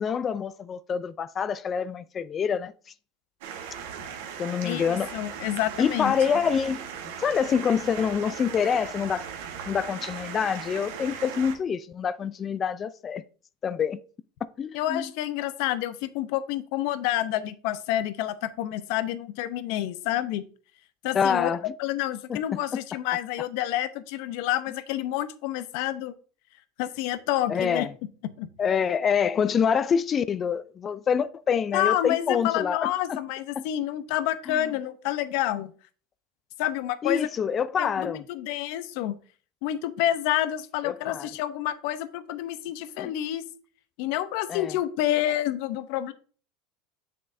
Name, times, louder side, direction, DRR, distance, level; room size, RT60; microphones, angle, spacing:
voice 1, 0.0-2.7 4.4-5.1 5.8-9.3 9.7-13.2 13.6-14.0 14.6-15.1 21.1-21.7 22.3-22.8 27.5-27.9 28.6-33.2 33.6-33.7 34.5-34.6 37.0-38.2 40.8-41.3 43.0-43.1 44.5-44.7, left 7 dB, 30° left, 0.3 m, -26 dB
sound 1, 3.4-11.6, right 7 dB, 80° right, 1.2 m, -38 dB
voice 2, 4.6-6.1 14.7-20.4 21.0-26.1 26.8-27.9 28.4-28.5 31.7-35.7 36.6-37.3 37.8-39.2 39.6-43.4 44.0-46.1, left 13 dB, 70° left, 0.7 m, -28 dB
7.6 x 6.5 x 2.6 m
supercardioid pair, 105°, 0 cm